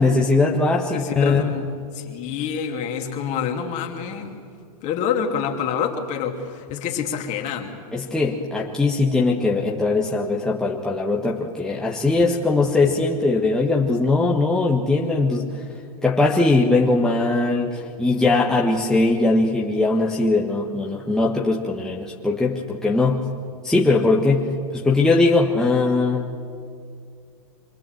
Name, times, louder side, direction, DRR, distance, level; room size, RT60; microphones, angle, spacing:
voice 1, 0.0-1.4 7.9-15.6 16.0-23.2 23.6-26.4, left 3 dB, 5° left, -3 dB, 1.4 m, -20 dB
voice 2, 0.9-1.7 1.9-4.3 4.8-7.7, left 7 dB, 40° left, 3 dB, 2.6 m, -27 dB
25.5 x 18.5 x 7.9 m, 2.3 s
hypercardioid pair, 125°, 20 cm